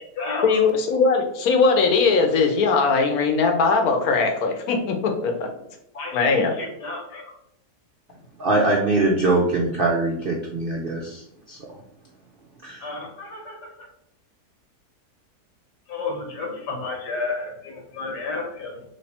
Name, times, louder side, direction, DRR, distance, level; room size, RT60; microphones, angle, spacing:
voice 1, 0.4-5.5 6.1-6.5, left 4 dB, 70° left, 4 dB, 1.2 m, -20 dB
voice 2, 5.9-7.2 12.8-13.6 15.9-18.7, left 3 dB, 85° left, 0 dB, 1.8 m, -31 dB
voice 3, 8.4-11.2 11.5-11.6 12.6-12.8, right 2 dB, 65° right, -2 dB, 0.5 m, -22 dB
3.3 x 3.2 x 4.2 m, 0.75 s
omnidirectional pair, 1.7 m